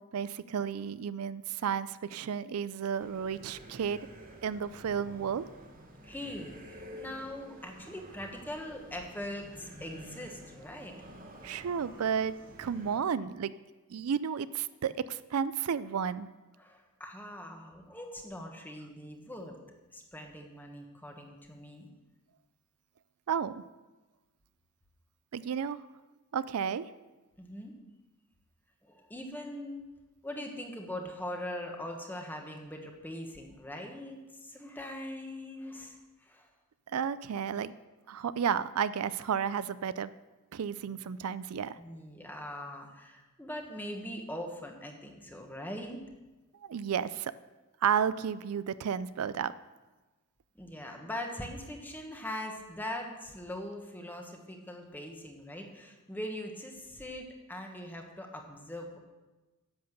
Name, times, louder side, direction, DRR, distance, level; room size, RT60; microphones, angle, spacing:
voice 1, 0.0-4.1 4.4-5.5 11.4-13.5 13.9-16.3 23.3-23.6 25.3-25.8 26.3-26.9 36.9-37.7 38.1-40.1 40.5-41.8 46.6-47.3 47.8-49.5, right 7 dB, 90° right, 15 dB, 0.4 m, -32 dB
sound 1, 3.0-13.0, equal, 40° right, 1.5 m, -50 dB
voice 2, 6.0-10.9 16.6-21.9 27.4-27.7 28.8-29.8 30.2-36.5 37.5-37.6 41.8-46.0 50.5-59.0, left 1 dB, 10° left, 2 dB, 1.4 m, -42 dB
10.5 x 7.9 x 6.7 m, 1.2 s
head